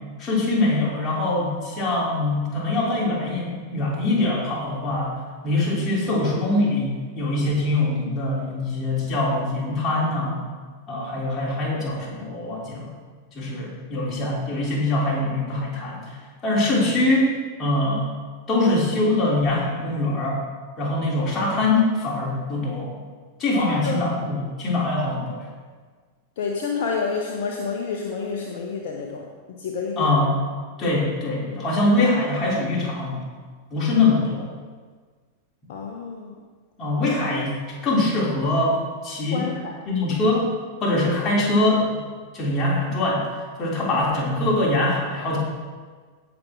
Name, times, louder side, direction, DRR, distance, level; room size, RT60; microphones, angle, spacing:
voice 1, 0.2-5.1 5.4-10.5 10.9-12.9 13.3-16.2 16.4-17.3 17.6-18.1 18.5-20.4 20.8-23.0 23.4-25.4 30.0-30.4 30.8-33.2 33.7-34.5 36.8-39.5 39.9-40.5 40.8-42.0 42.3-43.2 43.6-45.4, left 2 dB, 25° left, -5 dB, 3.2 m, -23 dB
voice 2, 23.5-24.0 26.4-29.3 29.6-30.1 35.7-36.3 39.3-39.7, left 5 dB, 55° left, 1 dB, 0.9 m, -28 dB
16.5 x 6.0 x 3.7 m, 1.5 s
figure-of-eight pair, 90°, 0 cm